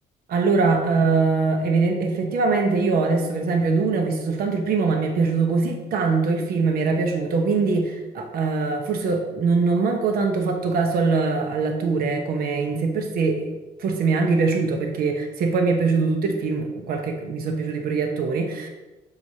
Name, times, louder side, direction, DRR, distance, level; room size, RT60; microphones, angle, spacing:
voice 1, 0.3-13.5 13.8-18.7, right 4 dB, 60° right, 3 dB, 1.1 m, -22 dB
7.9 x 6.6 x 2.9 m, 1.1 s
cardioid pair, 110°, 17 cm